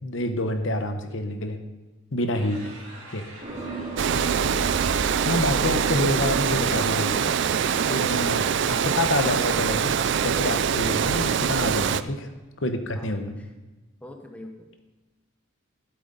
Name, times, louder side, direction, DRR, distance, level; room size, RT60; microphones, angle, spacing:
voice 1, 0.0-1.6 2.1-2.6 3.1-3.2 5.2-7.3 7.9-12.3 12.6-13.3, left 1 dB, 65° left, 7 dB, 0.9 m, -27 dB
sound 1, 2.3-9.9, right 2 dB, 75° right, 2.8 m, -45 dB
sound 2, 3.4-11.4, right 3 dB, 30° right, 3.2 m, -38 dB
voice 2, 3.5-4.0 7.7-9.3 10.5-10.7 11.7-12.3 12.9-13.5 14.0-14.7, left 1 dB, 5° left, 3 dB, 0.8 m, -45 dB
Water, 4.0-12.0, right 7 dB, 55° right, 0.3 m, -24 dB
12.5 x 8.0 x 4.0 m, 1.2 s
head